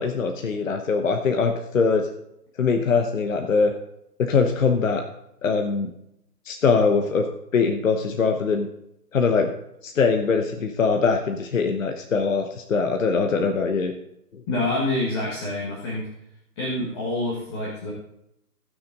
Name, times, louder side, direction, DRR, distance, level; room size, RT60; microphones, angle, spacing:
voice 1, 0.0-2.1 2.6-3.7 4.2-5.0 5.4-5.9 6.5-7.3 7.5-8.7 9.1-9.5 9.8-13.9, left 5 dB, 50° left, 5 dB, 1.0 m, -22 dB
voice 2, 14.5-16.1 16.6-17.9, left 2 dB, 15° left, -4 dB, 1.4 m, -27 dB
17.0 x 6.2 x 3.9 m, 0.80 s
figure-of-eight pair, 155°, 49 cm